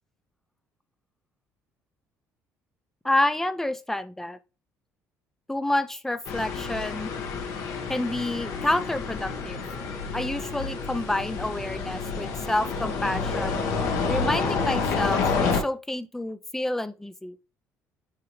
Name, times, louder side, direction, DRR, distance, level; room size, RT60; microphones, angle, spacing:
voice 1, 3.0-4.4 5.5-7.1 7.9-9.6 10.1-13.6 14.1-17.4, left 1 dB, 5° left, 0.5 m, -28 dB
sound 1, 6.3-15.6, left 4 dB, 70° left, 1.5 m, -29 dB
7.1 x 4.7 x 3.2 m
cardioid pair, 135°, 6 cm